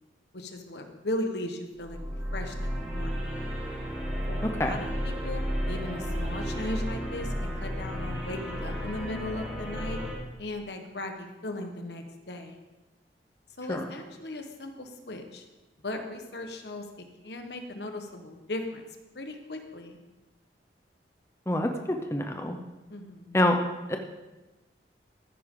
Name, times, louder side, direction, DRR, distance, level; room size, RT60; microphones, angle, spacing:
voice 1, 0.3-3.3 4.3-10.0 10.4-12.6 13.6-15.4 15.8-18.8 19.1-20.0 22.9-23.4, left 1 dB, 75° left, 5 dB, 1.3 m, -37 dB
sound 1, 1.8-10.1, equal, 5° right, 4.2 m, -33 dB
voice 2, 4.4-4.7 13.7-13.9 21.5-22.6 23.3-23.6 23.9-24.0, left 1 dB, 15° left, 4 dB, 0.7 m, -26 dB
14.0 x 9.9 x 3.8 m, 1.1 s
head